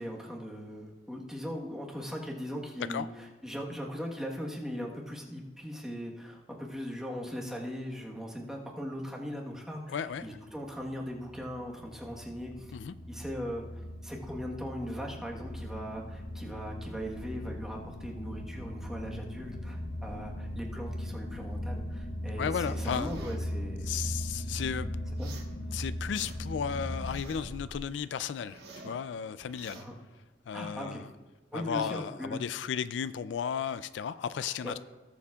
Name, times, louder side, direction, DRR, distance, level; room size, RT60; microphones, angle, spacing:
voice 1, 0.0-12.7 13.1-23.9 25.2-25.4 25.7-25.8 29.7-29.9 30.5-31.0 31.5-32.4 34.4-34.8, equal, 5° right, -1 dB, 1.2 m, -39 dB
voice 2, 9.9-10.3 12.7-12.9 22.4-23.1 23.9-25.0 25.7-29.8 30.5-31.1 31.5-34.8, left 7 dB, 80° left, 14 dB, 0.3 m, -34 dB
sound 1, 10.5-27.8, equal, 60° left, 1.1 m, -39 dB
sound 2, 22.7-23.4 25.1-25.5 25.9-26.6 26.9-27.6 28.0-29.0 29.4-29.9, right 3 dB, 65° right, 1.4 m, -49 dB
18.0 x 7.1 x 2.4 m, 1.2 s
head